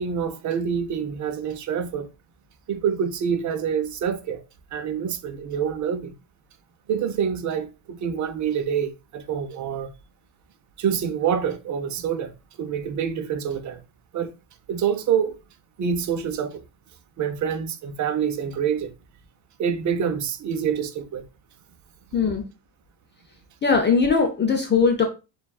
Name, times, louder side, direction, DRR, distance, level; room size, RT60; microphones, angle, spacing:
voice 1, 0.0-2.1 2.7-4.4 4.7-6.1 6.9-9.9 10.8-12.3 12.6-13.8 14.1-14.3 14.7-15.4 15.8-16.6 17.2-18.9 19.6-21.2, right 7 dB, 35° right, 0.6 m, -26 dB
voice 2, 23.6-25.0, left 5 dB, 25° left, 0.5 m, -20 dB
6.7 x 2.4 x 2.3 m
cardioid pair, 130°, 49 cm